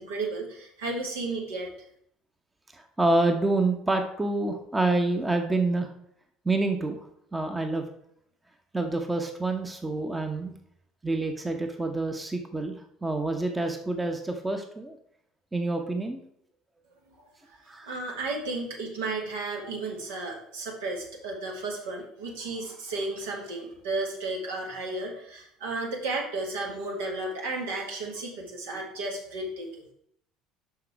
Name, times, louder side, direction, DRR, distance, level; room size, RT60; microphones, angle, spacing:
voice 1, 0.0-1.7 17.8-29.8, right 2 dB, 70° right, -1 dB, 1.8 m, -33 dB
voice 2, 2.7-5.9 6.4-7.8 8.7-10.6 11.0-15.0 15.5-16.2 17.7-18.0, right 2 dB, 15° right, 5 dB, 0.9 m, -27 dB
5.9 x 5.8 x 4.5 m, 0.70 s
figure-of-eight pair, 60°, 0 cm